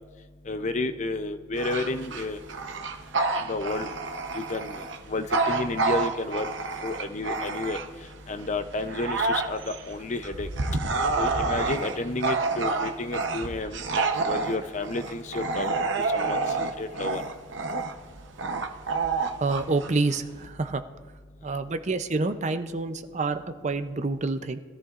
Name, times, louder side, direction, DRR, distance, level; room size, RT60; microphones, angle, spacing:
voice 1, 0.4-2.4 2.7-2.9 3.3-3.9 4.3-6.5 6.8-13.9 14.2-17.2 21.4-21.5, left 2 dB, 40° left, 9 dB, 0.6 m, -32 dB
Bark / Growling, 1.5-8.1 8.6-20.5, right 3 dB, 75° right, 0.8 m, -29 dB
voice 2, 19.4-20.8 21.4-24.6, right 3 dB, 40° right, 9 dB, 0.5 m, -28 dB
22.0 x 14.0 x 2.5 m, 1.5 s
head